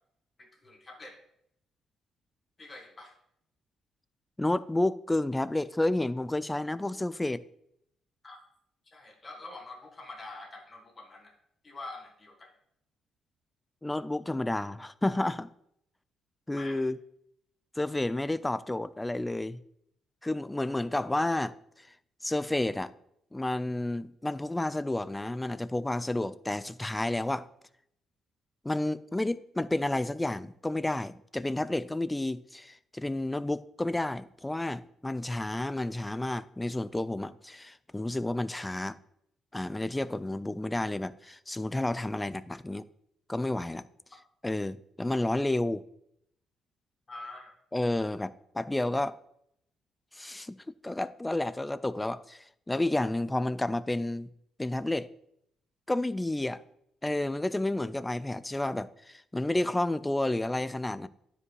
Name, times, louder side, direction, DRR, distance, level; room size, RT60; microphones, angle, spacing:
voice 1, 0.4-1.2 2.6-3.1 8.2-8.4 8.9-11.3 11.6-12.5 16.5-16.8 47.1-47.5, left 2 dB, 30° left, 1.7 m, -45 dB
voice 2, 4.4-7.4 13.8-15.5 16.5-17.0 17.8-19.6 20.2-21.9 22.2-22.9 23.3-27.5 28.6-39.0 39.5-42.9 43.3-43.8 44.4-45.8 47.7-49.2 50.1-50.6 50.8-54.3 54.6-55.1 55.9-56.6 57.0-61.1, left 1 dB, 10° left, 0.3 m, -31 dB
9.6 x 4.9 x 3.2 m
cardioid pair, 90°, 0 cm